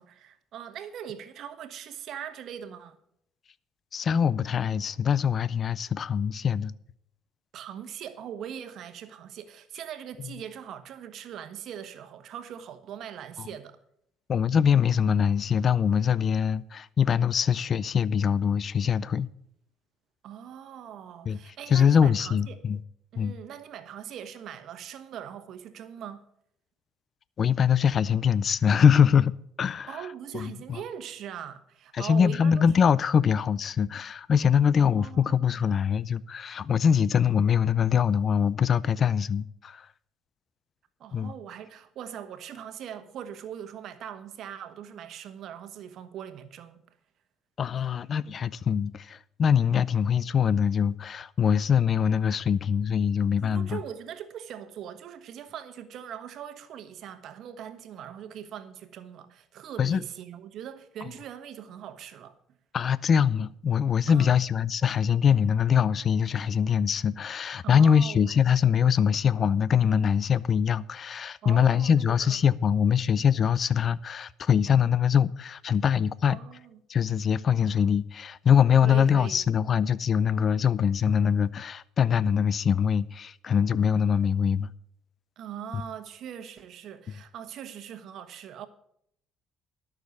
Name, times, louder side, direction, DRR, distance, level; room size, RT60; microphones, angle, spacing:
voice 1, 0.0-3.0 7.5-13.8 20.2-22.6 23.1-26.3 29.9-32.6 34.8-35.5 41.0-46.8 53.4-62.4 64.1-64.4 67.6-68.4 71.4-72.5 76.2-76.8 78.8-79.4 85.4-88.7, right 9 dB, 60° right, 1.2 m, -41 dB
voice 2, 3.9-6.7 14.3-19.3 21.3-21.4 21.7-22.8 23.2-23.3 27.4-30.0 30.3-30.8 31.9-39.9 41.1-41.3 47.6-53.8 59.8-60.0 62.7-76.4 76.9-84.7 85.7-85.8, left 7 dB, 40° left, 0.4 m, -23 dB
12.0 x 6.6 x 7.9 m
cardioid pair, 110°, 0 cm